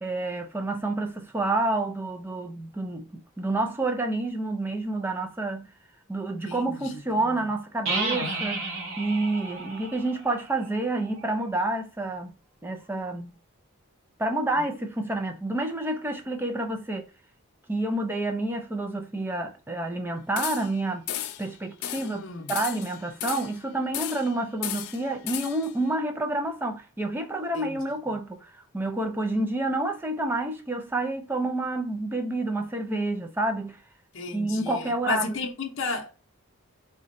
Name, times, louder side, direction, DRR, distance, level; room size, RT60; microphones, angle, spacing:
voice 1, 0.0-5.7 6.1-8.6 9.0-12.4 12.6-13.3 14.2-17.1 17.7-21.0 21.4-33.8 34.3-35.3, right 2 dB, 10° right, 0.4 m, -29 dB
voice 2, 6.4-7.4 14.6-14.7 22.0-22.5 27.5-27.8 34.1-36.1, left 3 dB, 60° left, 0.7 m, -34 dB
sound 1, 7.8-11.5, right 3 dB, 60° right, 0.8 m, -33 dB
sound 2, 20.4-20.8 21.1-21.5 21.8-22.1 22.5-23.6 23.9-24.3 24.6-25.7, left 12 dB, 90° left, 0.4 m, -34 dB
3.9 x 2.2 x 2.5 m
head